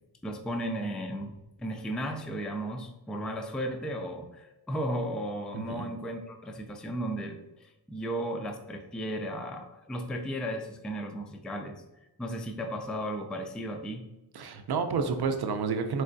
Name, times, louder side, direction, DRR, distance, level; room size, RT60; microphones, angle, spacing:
voice 1, 0.2-1.3 1.6-14.0, equal, ahead, 3 dB, 0.3 m, -35 dB
voice 2, 5.5-5.9 14.3-16.0, right 5 dB, 75° right, 7 dB, 0.5 m, -30 dB
4.6 x 3.2 x 2.6 m, 1.0 s
wide cardioid pair, 125°, 39 cm